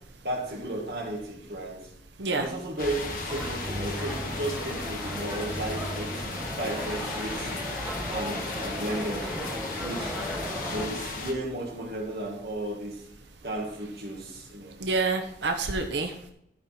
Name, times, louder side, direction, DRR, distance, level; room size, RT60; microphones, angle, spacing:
voice 1, 0.2-1.8 2.3-6.3 6.5-7.5 8.1-10.2 10.7-13.0 13.4-14.8, right 1 dB, 60° right, -1 dB, 2.3 m, -34 dB
sound 1, 2.8-11.3, left 2 dB, 50° left, 1.5 m, -35 dB
sound 2, 3.3-10.9, equal, 10° right, 1.5 m, -37 dB
voice 2, 14.8-16.3, right 3 dB, 85° right, 5 dB, 0.9 m, -28 dB
13.5 x 5.4 x 4.5 m, 0.73 s
head